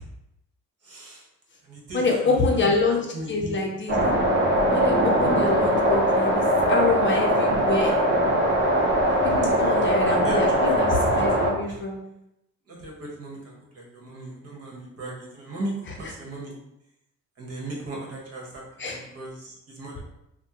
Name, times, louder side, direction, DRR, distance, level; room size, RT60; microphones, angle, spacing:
voice 1, 0.8-1.2 1.6-3.6 9.7-11.2 11.6-11.8 12.7-16.5 17.4-20.0, right 1 dB, 50° right, -2 dB, 1.1 m, -37 dB
voice 2, 1.9-3.0 3.3-3.9 4.7-6.4 6.7-8.0 9.2-12.0 18.8-19.0, left 3 dB, 40° left, 0 dB, 0.6 m, -26 dB
sound 1, 3.9-11.5, right 1 dB, 35° right, 0.8 m, -21 dB
3.4 x 2.1 x 2.9 m, 0.83 s
cardioid pair, 90°, 30 cm